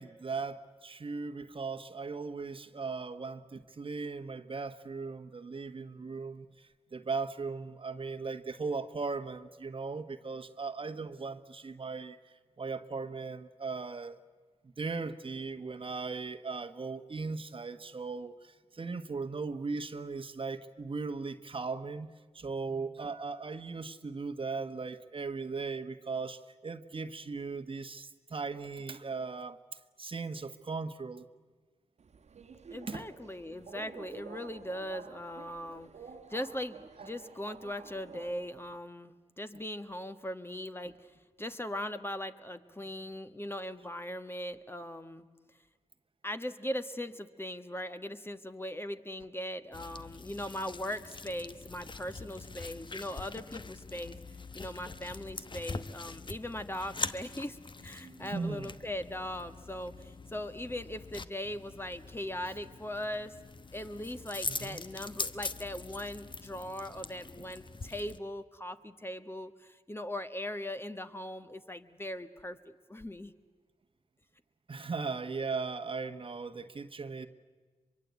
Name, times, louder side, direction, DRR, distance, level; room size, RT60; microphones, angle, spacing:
voice 1, 0.0-14.2 14.8-29.6 30.0-31.2 32.9-33.0 58.0-58.7 64.5-64.8 74.7-77.3, right 4 dB, 45° right, 1.2 m, -38 dB
Subway metro underground, 32.0-38.8, right 5 dB, 65° right, 1.4 m, -50 dB
voice 2, 32.7-35.9 36.3-40.9 41.4-45.2 46.2-54.1 54.5-57.6 57.8-63.3 63.7-73.3, left 1 dB, 20° left, 1.4 m, -39 dB
sound 1, 49.7-68.2, left 3 dB, 40° left, 1.1 m, -43 dB
24.0 x 23.0 x 8.3 m
supercardioid pair, 40°, 12 cm